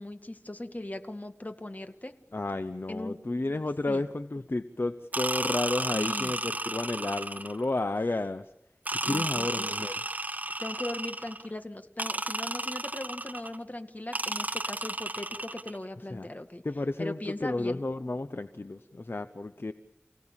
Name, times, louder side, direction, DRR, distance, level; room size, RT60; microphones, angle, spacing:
voice 1, 0.0-2.1 2.9-3.2 3.9-4.0 5.9-6.3 9.0-9.7 10.6-16.6 17.0-17.8, left 1 dB, 40° left, 7 dB, 2.0 m, -39 dB
voice 2, 2.3-8.5 8.9-9.9 16.1-16.3 16.6-19.7, left 2 dB, 60° left, 10 dB, 1.0 m, -32 dB
sound 1, 5.1-7.7 8.8-11.5 12.0-13.6 14.1-15.8, right 1 dB, 40° right, 1.3 m, -33 dB
30.0 x 17.5 x 9.0 m, 0.90 s
wide cardioid pair, 45°, 4 cm